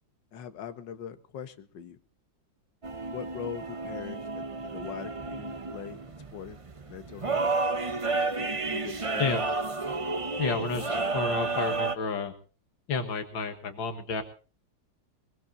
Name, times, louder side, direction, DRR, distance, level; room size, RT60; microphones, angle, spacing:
voice 1, 0.3-2.0 3.1-6.6 6.9-7.4 8.7-9.3, left 8 dB, 70° left, 10 dB, 1.9 m, -41 dB
sound 1, 2.8-12.0, right 3 dB, 30° right, 0.6 m, -31 dB
voice 2, 10.4-12.3 12.9-14.2, left 4 dB, 90° left, 6 dB, 2.3 m, -31 dB
22.0 x 21.0 x 2.7 m, 0.36 s
omnidirectional pair, 2.1 m